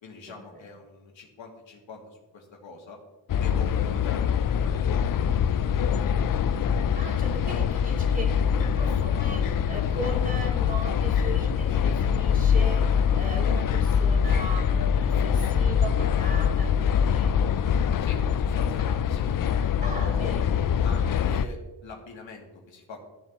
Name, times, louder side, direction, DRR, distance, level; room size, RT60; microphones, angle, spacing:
voice 1, 0.0-3.0 3.4-6.2 18.0-19.3 19.8-20.3 20.7-23.0, left 4 dB, 80° left, 1 dB, 2.2 m, -43 dB
sound 1, 3.3-21.5, left 7 dB, 50° left, 0.5 m, -24 dB
voice 2, 7.0-17.4 19.8-20.8, right 1 dB, 20° right, -1 dB, 2.3 m, -38 dB
13.5 x 7.2 x 3.6 m, 1.1 s
cardioid pair, 105°, 45 cm